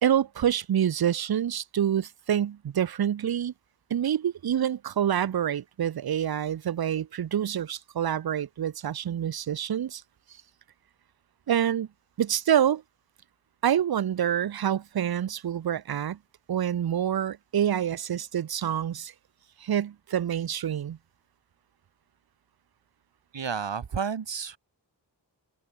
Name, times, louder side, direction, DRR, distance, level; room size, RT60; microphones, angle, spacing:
voice 1, 0.0-3.5 3.9-10.0 11.5-11.9 12.2-12.8 13.6-16.2 16.5-19.1 19.6-21.0, right 9 dB, 60° right, 0.6 m, -27 dB
voice 2, 23.3-24.6, right 6 dB, 85° right, 2.6 m, -31 dB
open air
wide cardioid pair, 95°, 43 cm